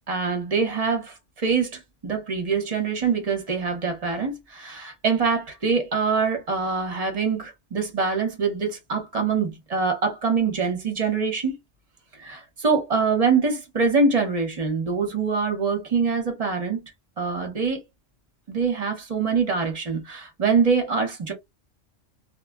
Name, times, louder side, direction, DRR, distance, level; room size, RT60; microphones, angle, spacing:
voice 1, 0.1-11.6 12.2-16.8 17.2-17.8 18.5-21.3, right 5 dB, 35° right, 0.8 m, -24 dB
2.2 x 2.1 x 3.4 m
omnidirectional pair, 1.3 m